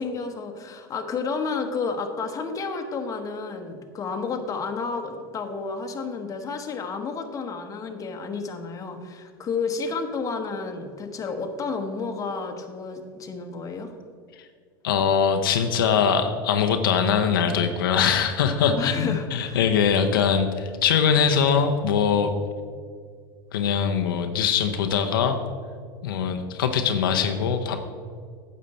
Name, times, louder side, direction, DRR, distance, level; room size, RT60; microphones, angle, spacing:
voice 1, 0.0-13.9 18.7-19.6, left 4 dB, 30° left, 5 dB, 1.1 m, -31 dB
voice 2, 14.8-22.3 23.5-25.4 26.0-27.8, left 7 dB, 85° left, 5 dB, 0.7 m, -22 dB
9.4 x 7.4 x 4.2 m, 2.1 s
hypercardioid pair, 100°, 11 cm